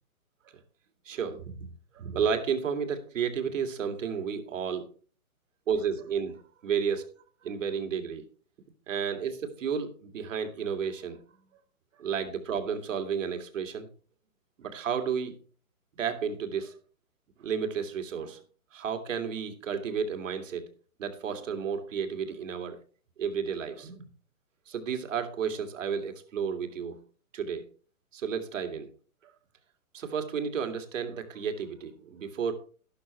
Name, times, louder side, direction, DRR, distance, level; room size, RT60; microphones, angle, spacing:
voice 1, 1.1-1.7 1.9-4.9 5.7-7.1 7.4-8.2 8.9-11.2 12.0-13.9 14.6-15.3 16.0-16.7 17.4-18.4 18.7-20.6 21.0-22.8 23.2-24.1 24.7-27.0 27.3-27.6 28.1-28.9 29.9-32.5, right 7 dB, 60° right, 7 dB, 2.3 m, -32 dB
12.5 x 11.5 x 3.1 m, 0.40 s
hypercardioid pair, 150°, 43 cm